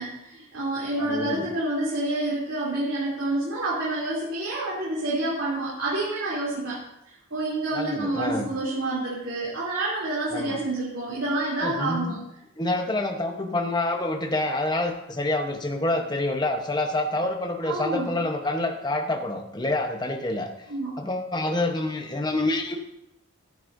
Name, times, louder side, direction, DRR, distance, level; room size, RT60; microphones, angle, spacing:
voice 1, 0.0-12.2 17.6-18.2 20.7-20.9, right 2 dB, 65° right, -8 dB, 3.2 m, -28 dB
voice 2, 1.0-1.5 7.7-8.5 10.3-10.6 11.6-12.1 12.6-20.5 21.0-22.8, left 2 dB, 20° left, 4 dB, 0.9 m, -27 dB
14.5 x 10.0 x 2.7 m, 0.84 s
head